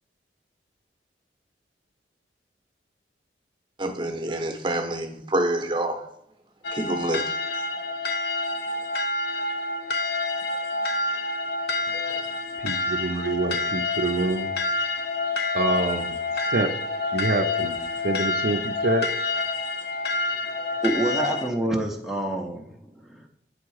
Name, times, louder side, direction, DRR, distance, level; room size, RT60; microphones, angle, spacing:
voice 1, 3.8-6.0 6.7-7.2 7.7-8.0 11.9-12.1, right 1 dB, 25° right, 5 dB, 0.8 m, -27 dB
sound 1, 6.6-21.5, left 3 dB, 60° left, 0.5 m, -28 dB
voice 2, 12.6-14.5 15.5-16.1 16.5-16.7 17.1-17.7 18.0-19.1, right 3 dB, 60° right, 6 dB, 0.5 m, -26 dB
voice 3, 20.8-23.3, right 1 dB, ahead, 0 dB, 0.6 m, -27 dB
7.8 x 3.6 x 4.7 m, 0.74 s
head